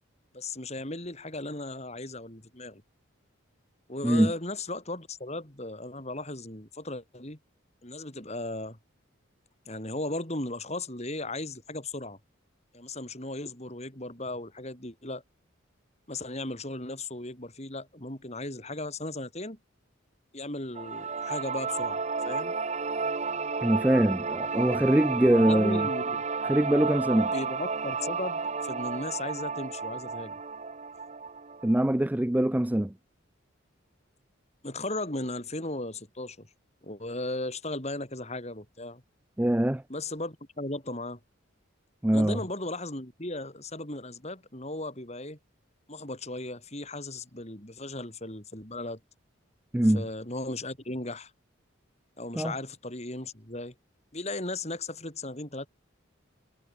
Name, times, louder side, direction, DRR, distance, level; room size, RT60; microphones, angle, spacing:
voice 1, 0.3-2.8 3.9-7.4 7.8-8.8 9.7-12.2 12.7-15.2 16.1-19.6 20.3-22.5 25.3-26.2 27.3-30.4 34.6-36.5 36.8-39.0 39.9-41.2 42.1-45.4 45.9-49.0 49.9-51.3 52.2-53.7 54.1-55.7, left 2 dB, 30° left, 4.6 m, -36 dB
sound 1, 20.7-31.8, right 4 dB, 35° right, 0.9 m, -32 dB
voice 2, 23.6-25.9 26.4-27.3 31.6-32.9 39.4-39.8 42.0-42.4 49.7-50.0 52.4-52.5, right 1 dB, 10° right, 0.4 m, -23 dB
head